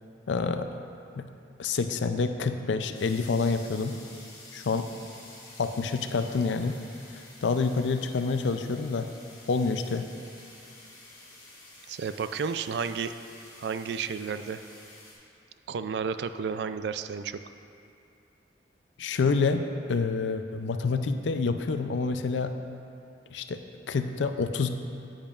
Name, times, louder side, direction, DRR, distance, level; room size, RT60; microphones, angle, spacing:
voice 1, 0.3-0.7 1.1-1.2 1.6-3.9 4.5-4.9 5.6-6.8 7.1-9.1 9.5-10.1 19.0-19.6 19.9-22.5 23.3-23.6 23.9-24.7, left 4 dB, 80° left, 8 dB, 0.4 m, -27 dB
sound 1, 2.9-15.1, left 2 dB, 25° left, 1.9 m, -50 dB
voice 2, 11.9-13.2 13.6-14.6 15.7-17.4, right 6 dB, 65° right, 11 dB, 0.3 m, -32 dB
10.5 x 8.8 x 2.4 m, 2.6 s
head